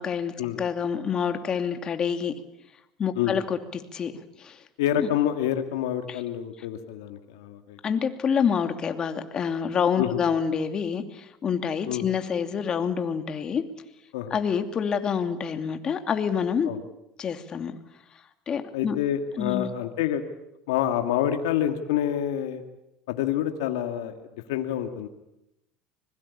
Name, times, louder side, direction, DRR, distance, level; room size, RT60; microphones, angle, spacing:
voice 1, 0.0-2.3 3.0-4.1 4.4-4.6 5.0-5.1 6.1-6.2 7.8-13.6 14.3-16.7 17.2-17.7 18.5-19.0 19.4-19.7, left 7 dB, 35° left, 7 dB, 2.8 m, -27 dB
voice 2, 4.8-7.8 10.0-10.2 11.9-12.1 14.1-14.3 16.7-16.8 18.7-20.2 20.7-22.6 23.1-24.1 24.5-25.1, left 11 dB, 85° left, 6 dB, 2.2 m, -27 dB
25.5 x 22.0 x 8.5 m, 0.87 s
supercardioid pair, 95°, 2 cm